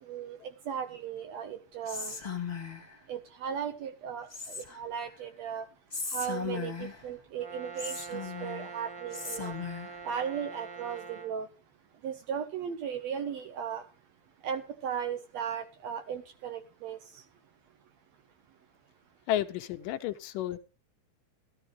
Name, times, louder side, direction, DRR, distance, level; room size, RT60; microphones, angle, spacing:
voice 1, 0.0-0.4 0.7-2.2 3.1-5.7 6.1-9.6 10.0-11.5 12.0-13.8 14.4-17.2, right 7 dB, 70° right, 9 dB, 1.7 m, -36 dB
Whispering, 1.8-2.9 4.3-5.0 5.9-7.1 7.8-8.7 9.1-10.0, left 5 dB, 15° left, 1.5 m, -37 dB
Brass instrument, 7.4-11.4, right 5 dB, 40° right, 2.0 m, -44 dB
voice 2, 19.3-20.6, left 12 dB, 85° left, 9 dB, 2.4 m, -31 dB
14.0 x 12.5 x 3.2 m, 0.33 s
omnidirectional pair, 3.8 m